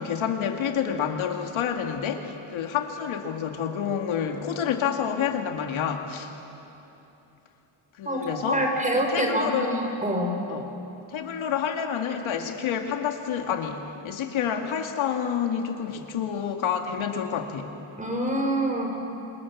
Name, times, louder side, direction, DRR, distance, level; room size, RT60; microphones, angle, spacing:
voice 1, 0.0-6.3 8.0-8.7 8.9-9.8 10.5-10.7 11.1-17.7, left 8 dB, 70° left, 4 dB, 2.2 m, -28 dB
voice 2, 8.0-10.4 18.0-18.9, right 1 dB, 15° right, 2 dB, 4.7 m, -26 dB
29.0 x 26.5 x 7.3 m, 3.0 s
cardioid pair, 140°, 49 cm